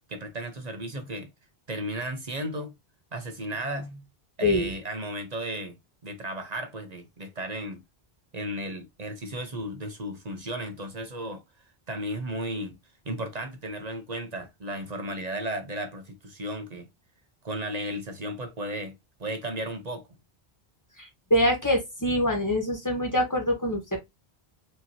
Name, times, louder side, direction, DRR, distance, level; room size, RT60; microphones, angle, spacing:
voice 1, 0.1-1.3 1.7-2.7 3.1-4.0 4.4-5.8 6.0-7.8 8.3-11.4 11.9-12.8 13.0-16.9 17.4-18.9 19.2-20.0, right 1 dB, 45° right, 0.9 m, -34 dB
voice 2, 4.4-4.7 21.3-24.0, left 1 dB, 20° left, 1.4 m, -24 dB
4.7 x 2.9 x 2.8 m
omnidirectional pair, 1.0 m